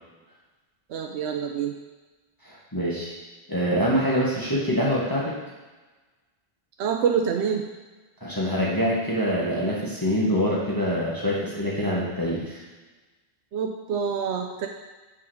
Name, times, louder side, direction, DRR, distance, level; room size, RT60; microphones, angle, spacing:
voice 1, 0.9-1.7 6.8-7.7 13.5-14.7, right 7 dB, 85° right, 3 dB, 0.9 m, -26 dB
voice 2, 2.4-3.1 3.5-5.4 8.2-12.6, equal, 20° left, -7 dB, 1.5 m, -25 dB
6.9 x 5.1 x 4.9 m, 1.2 s
omnidirectional pair, 1.1 m